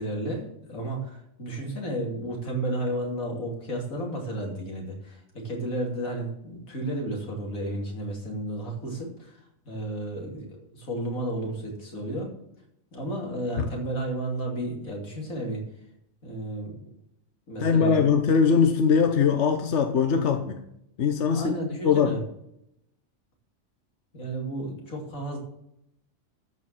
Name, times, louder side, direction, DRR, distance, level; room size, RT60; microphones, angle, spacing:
voice 1, 0.0-12.3 12.9-15.6 16.2-16.9 17.5-18.1 21.3-22.2 24.1-25.4, right 1 dB, 85° left, 0 dB, 3.2 m, -32 dB
voice 2, 17.6-20.6 21.0-21.5 21.8-22.2, left 6 dB, 60° left, 6 dB, 1.2 m, -21 dB
13.0 x 4.8 x 7.5 m, 0.77 s
omnidirectional pair, 1.4 m